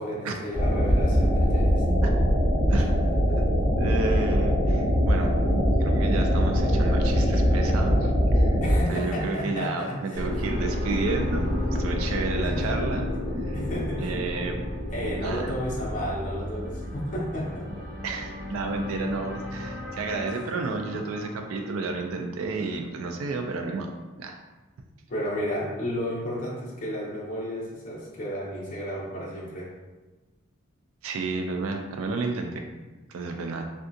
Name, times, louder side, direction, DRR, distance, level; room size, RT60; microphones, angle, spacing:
voice 1, 0.0-1.8 8.6-10.2 12.4-12.7 13.1-13.2 13.5-14.1 14.9-17.7 25.1-29.7, equal, 40° left, -5 dB, 0.6 m, -32 dB
sound 1, 0.5-8.8, equal, 10° right, 1.3 m, -22 dB
voice 2, 3.3-5.3 5.8-8.6 8.9-13.1 13.4-13.6 14.0-14.6 15.2-15.5 18.0-23.9 24.2-24.3 31.0-32.6 33.1-33.7, right 3 dB, 85° right, 3 dB, 0.3 m, -31 dB
sound 2, 10.1-17.9 18.2-18.3, left 1 dB, 35° right, 1.0 m, -32 dB
sound 3, 10.3-22.3, left 1 dB, 55° right, 0.7 m, -36 dB
3.5 x 2.3 x 2.6 m, 1.2 s
head